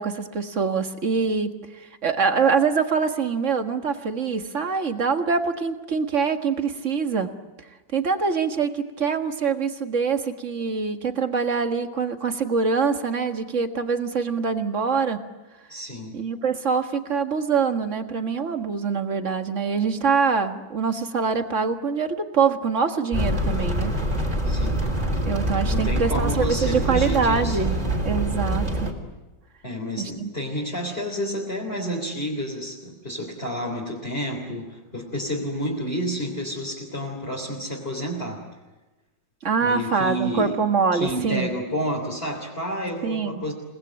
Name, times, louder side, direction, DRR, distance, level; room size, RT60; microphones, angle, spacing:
voice 1, 0.0-7.3 7.9-15.2 16.1-23.9 25.3-27.8 28.1-28.9 30.0-30.3 39.4-41.5 43.0-43.4, right 5 dB, 40° right, 6 dB, 1.9 m, -24 dB
voice 2, 15.7-16.2 24.4-24.8 25.6-27.8 29.6-38.4 39.6-40.6 40.9-43.5, equal, 30° left, -2 dB, 3.9 m, -30 dB
sound 1, 23.1-28.9, right 1 dB, 25° right, 3.6 m, -25 dB
29.5 x 20.0 x 8.9 m, 1.1 s
omnidirectional pair, 2.0 m